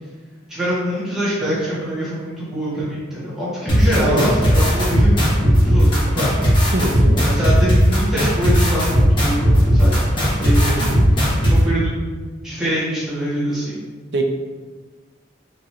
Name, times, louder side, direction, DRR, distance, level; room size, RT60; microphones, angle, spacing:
voice 1, 0.5-6.3 7.2-10.0 10.4-10.7 11.2-12.0 12.4-13.8, right 1 dB, 5° right, -11 dB, 1.4 m, -24 dB
sound 1, 3.7-11.5, equal, 25° left, 1.2 m, -16 dB
voice 2, 3.9-4.5 6.7-7.2 10.6-11.1 14.1-14.2, right 1 dB, 65° right, 2 dB, 0.6 m, -23 dB
5.2 x 3.1 x 2.7 m, 1.4 s
head